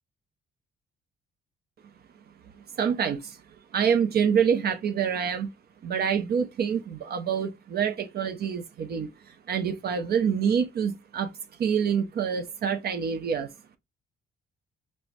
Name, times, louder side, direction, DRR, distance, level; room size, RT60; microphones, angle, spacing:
voice 1, 2.8-3.4 3.7-5.5 5.8-11.3 11.6-13.5, right 7 dB, 55° right, 0.5 m, -26 dB
4.4 x 2.0 x 2.5 m
cardioid pair, 90°, 20 cm